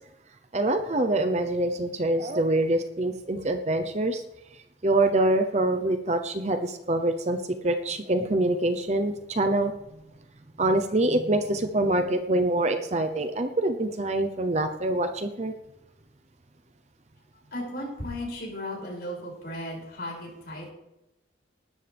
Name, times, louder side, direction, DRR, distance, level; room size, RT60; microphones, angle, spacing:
voice 1, 0.5-4.2 4.8-7.4 7.6-9.7 10.6-15.5, right 1 dB, 35° right, 7 dB, 0.8 m, -25 dB
voice 2, 17.5-20.7, left 1 dB, 55° left, -3 dB, 6.7 m, -35 dB
18.5 x 13.0 x 3.5 m, 0.89 s
head